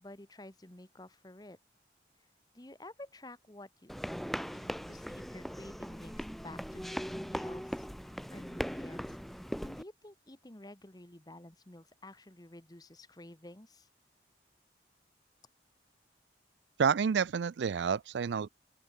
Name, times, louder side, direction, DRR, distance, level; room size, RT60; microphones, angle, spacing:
voice 1, 0.0-1.6 2.5-4.0 4.5-13.9, left 1 dB, 20° left, 1.2 m, -51 dB
sound 1, 3.9-9.8, equal, ahead, 1.4 m, -39 dB
voice 2, 16.8-18.5, right 6 dB, 80° right, 0.4 m, -29 dB
open air
head